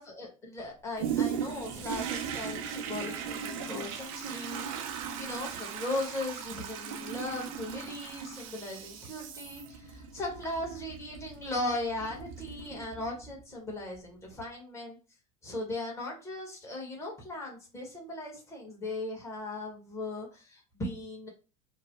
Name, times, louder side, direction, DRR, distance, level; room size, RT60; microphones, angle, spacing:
voice 1, 0.0-4.9 5.2-15.0 15.4-21.3, left 2 dB, 15° left, -2 dB, 1.3 m, -38 dB
Toilet flush, 1.0-13.4 13.9-14.0, right 7 dB, 70° right, 0.6 m, -38 dB
3.0 x 2.1 x 2.9 m, 0.33 s
hypercardioid pair, 85°, 18 cm